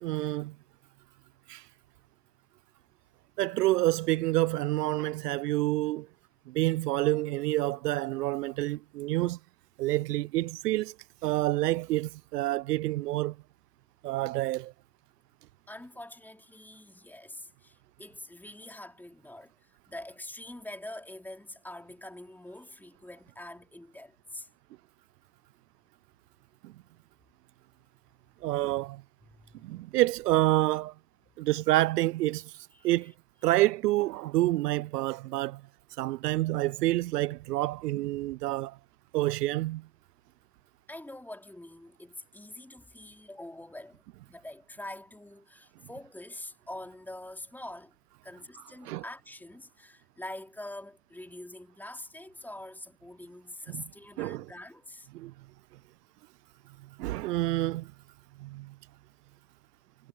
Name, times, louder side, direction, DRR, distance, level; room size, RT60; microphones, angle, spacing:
voice 1, 0.0-0.5 1.5-1.7 3.4-6.1 6.5-9.4 9.8-10.9 11.2-13.4 14.0-14.7 26.6-26.7 28.4-29.0 29.6-30.9 31.4-33.1 33.4-35.6 36.0-38.8 39.1-39.9 48.9-49.0 53.7-53.8 54.2-54.5 55.1-55.3 57.0-57.9 58.4-58.7, right 17 dB, 70° right, 0.9 m, -28 dB
voice 2, 15.7-24.5 29.3-29.9 32.7-33.1 40.9-48.0 48.2-55.1, left 1 dB, 5° left, 4.1 m, -45 dB
hypercardioid pair, 120°, 50 cm